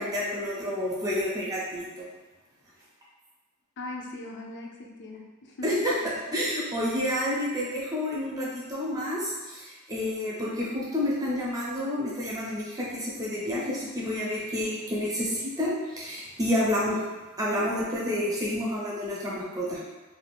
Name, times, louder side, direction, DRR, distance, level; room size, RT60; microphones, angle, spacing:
voice 1, 0.0-2.1 5.6-5.9 6.3-17.0 17.4-19.8, left 1 dB, 15° right, -6 dB, 0.7 m, -29 dB
voice 2, 3.8-5.8, left 2 dB, 55° left, 0 dB, 0.5 m, -40 dB
2.5 x 2.4 x 3.4 m, 1.2 s
head